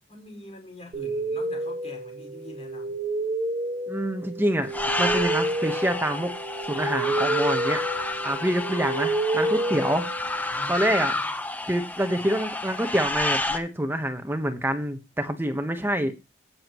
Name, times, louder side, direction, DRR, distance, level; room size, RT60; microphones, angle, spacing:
voice 1, 0.1-3.0 10.5-11.3, left 1 dB, 35° left, 5.3 m, -45 dB
sound 1, 0.9-10.6, right 2 dB, 40° right, 1.8 m, -29 dB
voice 2, 3.9-4.7 5.0-6.3 6.7-7.8 8.2-10.0 10.7-11.1 11.6-16.1, right 1 dB, 15° right, 1.2 m, -26 dB
sound 2, 4.7-13.6, left 2 dB, 10° left, 1.1 m, -30 dB
17.5 x 7.3 x 3.1 m
head